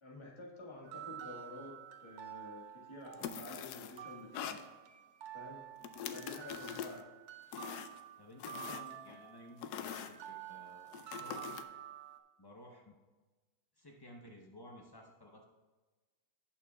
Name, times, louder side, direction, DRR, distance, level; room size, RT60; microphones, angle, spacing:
voice 1, 0.0-4.6 5.3-5.7 6.0-7.1, left 2 dB, 20° left, -3 dB, 1.4 m, -50 dB
sound 1, 0.8-12.2, right 11 dB, 80° right, 1.1 m, -50 dB
sound 2, 3.1-4.0 4.3-4.6 5.8-7.0 7.5-8.0 8.4-9.2 9.6-10.1 10.9-11.6, left 9 dB, 90° left, 1.1 m, -43 dB
voice 2, 8.2-11.6 12.4-12.9 13.8-15.4, left 1 dB, 40° left, 0 dB, 0.3 m, -55 dB
17.0 x 5.7 x 2.3 m, 1.3 s
omnidirectional pair, 1.7 m